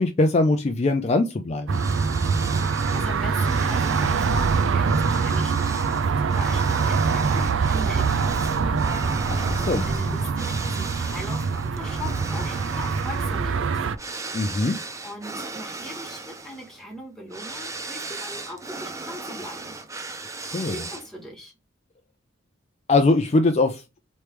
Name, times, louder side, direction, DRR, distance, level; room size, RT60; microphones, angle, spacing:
voice 1, 0.0-1.8 9.3-10.2 14.3-14.8 20.5-20.8 22.9-23.8, left 2 dB, 35° left, 0.4 m, -22 dB
sound 1, 1.7-21.3, right 3 dB, 15° right, 0.5 m, -37 dB
sound 2, 1.7-13.9, right 5 dB, 80° right, 0.4 m, -24 dB
voice 2, 2.5-14.0 14.5-19.8 20.1-21.5, left 1 dB, ahead, 1.5 m, -40 dB
sound 3, 4.1-10.0, equal, 30° right, 1.4 m, -37 dB
3.3 x 3.2 x 4.4 m
head